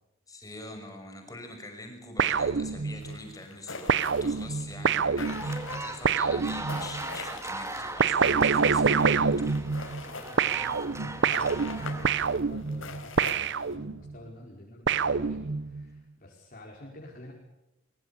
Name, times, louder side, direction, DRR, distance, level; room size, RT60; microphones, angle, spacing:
voice 1, 0.3-9.7, left 2 dB, 20° left, 4 dB, 5.9 m, -44 dB
sound 1, 2.2-3.2 3.9-7.0 8.0-10.1 10.4-14.1 14.9-15.9, right 5 dB, 60° right, 0.7 m, -26 dB
sound 2, 3.0-13.7, left 3 dB, 80° left, 4.6 m, -43 dB
sound 3, 5.3-12.4, right 2 dB, 15° right, 2.1 m, -40 dB
voice 2, 10.0-17.3, left 1 dB, 45° left, -3 dB, 5.0 m, -49 dB
23.5 x 23.0 x 7.1 m, 0.91 s
head